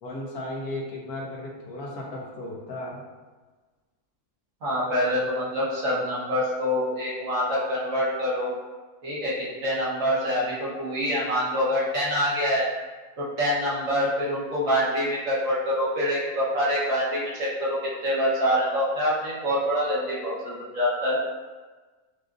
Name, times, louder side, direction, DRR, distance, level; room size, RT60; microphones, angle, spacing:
voice 1, 0.0-3.0, left 1 dB, 80° left, -2 dB, 1.4 m, -35 dB
voice 2, 4.6-8.5 9.0-9.3 9.6-12.6 13.2-21.2, equal, 60° right, -7 dB, 1.5 m, -25 dB
6.4 x 2.5 x 2.5 m, 1.3 s
omnidirectional pair, 1.6 m